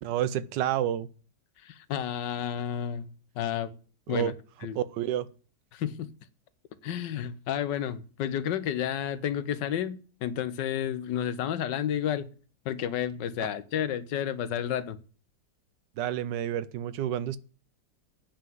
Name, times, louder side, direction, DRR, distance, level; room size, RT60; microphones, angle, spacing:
voice 1, 0.0-1.1 4.1-4.3 4.7-5.3 13.4-13.5 16.0-17.4, right 11 dB, 85° right, 1.4 m, -29 dB
voice 2, 1.6-3.1 3.3-3.7 4.1-4.3 4.6-4.8 5.7-6.1 6.8-12.3 12.6-15.0, left 9 dB, 80° left, 1.5 m, -31 dB
8.7 x 5.7 x 7.7 m
omnidirectional pair, 1.9 m